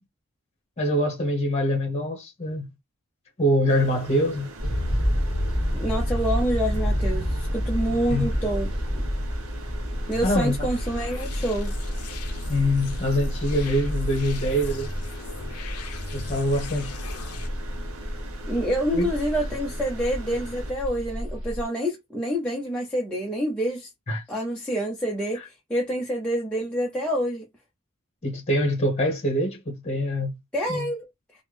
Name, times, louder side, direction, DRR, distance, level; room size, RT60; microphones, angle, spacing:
voice 1, 0.8-2.7 3.4-4.5 8.1-8.3 10.2-10.7 12.5-14.9 16.1-17.0 18.9-19.1 24.1-24.2 25.3-25.4 28.2-30.4 30.7-30.9, equal, 30° left, 0.9 m, -24 dB
sound 1, 3.7-20.7, right 1 dB, 65° right, 0.7 m, -42 dB
sound 2, 4.6-21.6, equal, 20° right, 1.6 m, -29 dB
voice 2, 5.8-8.7 10.1-11.7 18.5-23.9 24.3-27.4 30.5-31.1, equal, 5° left, 0.5 m, -27 dB
sound 3, 10.1-17.5, left 5 dB, 85° left, 0.5 m, -41 dB
3.4 x 2.1 x 3.3 m
head